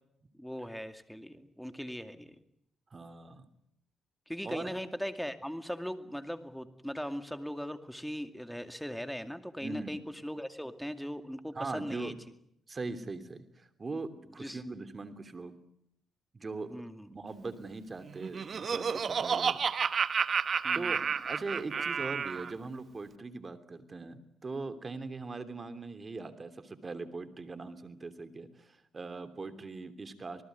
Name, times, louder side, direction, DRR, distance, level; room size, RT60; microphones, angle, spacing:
voice 1, 0.4-2.4 4.3-12.1 14.4-14.6 16.6-17.1 20.6-21.1 21.7-21.9, equal, ahead, 8 dB, 2.3 m, -39 dB
voice 2, 2.9-3.5 4.4-4.7 9.6-10.0 11.5-12.2 12.7-15.5 16.3-16.8 17.1-19.6 20.7-21.0 21.2-30.4, right 3 dB, 30° right, 10 dB, 3.1 m, -40 dB
Laughter, 18.1-22.5, right 6 dB, 45° right, 1.2 m, -31 dB
26.5 x 19.5 x 9.5 m, 0.75 s
cardioid pair, 90°, 0 cm